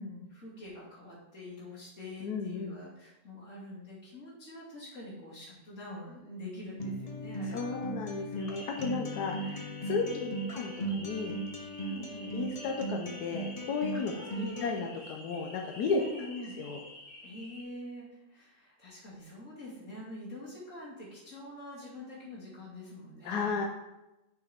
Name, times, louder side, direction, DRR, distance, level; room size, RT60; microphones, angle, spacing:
voice 1, 0.0-7.8 9.9-10.4 11.8-12.3 13.9-14.7 16.0-16.6 17.2-23.5, left 1 dB, 50° left, -7 dB, 3.0 m, -45 dB
voice 2, 2.2-2.8 7.5-10.0 10.5-11.3 12.3-14.1 14.4-16.0 16.6-16.8 23.2-23.7, left 4 dB, 90° left, 2 dB, 1.3 m, -34 dB
Acoustic guitar, 6.8-14.8, right 2 dB, 35° left, 0.6 m, -38 dB
sound 1, 8.3-17.6, equal, 75° left, 3.0 m, -50 dB
6.7 x 5.5 x 4.3 m, 0.97 s
omnidirectional pair, 1.7 m